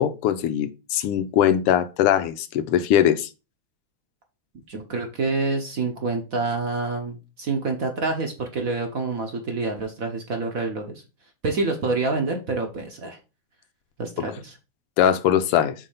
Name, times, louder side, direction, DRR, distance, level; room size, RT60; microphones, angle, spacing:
voice 1, 0.0-3.3 15.0-15.7, left 10 dB, 90° left, 1.6 m, -21 dB
voice 2, 4.7-11.0 11.4-13.2 14.0-14.6, right 3 dB, 50° right, 1.1 m, -27 dB
5.4 x 3.9 x 5.5 m
omnidirectional pair, 2.4 m